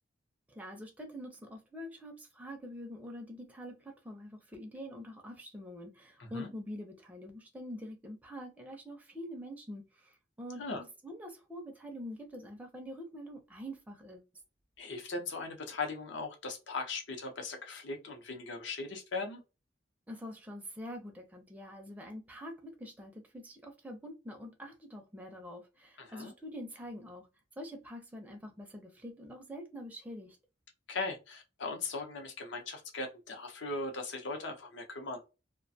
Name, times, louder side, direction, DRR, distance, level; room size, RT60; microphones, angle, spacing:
voice 1, 0.5-14.2 20.1-27.3 27.6-30.4, equal, 10° right, 0.4 m, -45 dB
voice 2, 14.8-19.4 26.0-26.3 30.9-35.2, left 3 dB, 65° left, 0.6 m, -39 dB
2.4 x 2.2 x 2.6 m
head